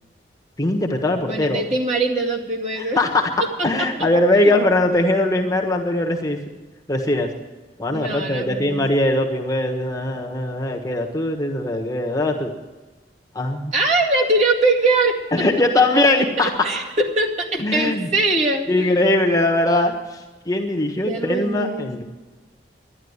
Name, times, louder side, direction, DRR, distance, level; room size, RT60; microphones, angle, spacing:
voice 1, 0.6-1.6 2.8-3.3 3.6-6.4 6.9-7.3 7.8-12.5 13.3-13.7 15.3-16.5 17.6-18.1 18.7-19.9 20.4-22.0, left 1 dB, 20° left, 1 dB, 1.3 m, -20 dB
voice 2, 1.2-3.0 3.6-3.9 4.4-4.5 7.9-8.8 13.7-15.4 15.9-18.9 21.1-21.9, right 2 dB, 40° right, -1 dB, 2.2 m, -22 dB
12.5 x 11.0 x 9.7 m, 1.2 s
head